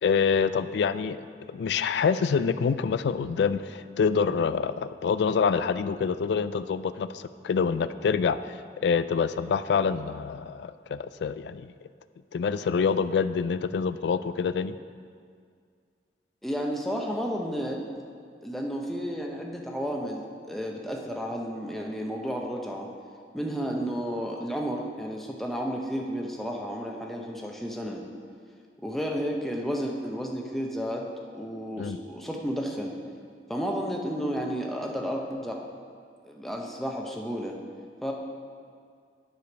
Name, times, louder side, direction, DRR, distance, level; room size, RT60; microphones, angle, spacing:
voice 1, 0.0-8.6 8.8-11.7 12.3-14.8 31.8-32.0, left 6 dB, 75° left, 13 dB, 0.3 m, -26 dB
voice 2, 16.4-17.8 18.4-22.9 23.3-28.0 28.8-33.0 33.5-35.7 36.2-37.6 38.0-38.1, equal, ahead, 0 dB, 0.7 m, -32 dB
9.5 x 5.0 x 6.1 m, 2.1 s
head